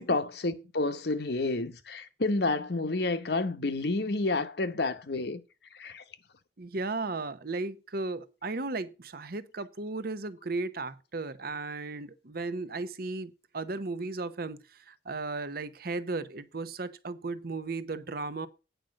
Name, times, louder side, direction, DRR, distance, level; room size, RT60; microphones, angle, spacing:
voice 1, 0.0-5.4 5.7-6.0, left 2 dB, 65° left, 1.0 m, -30 dB
voice 2, 6.6-18.5, right 3 dB, 60° right, 0.9 m, -35 dB
9.2 x 5.1 x 7.4 m
head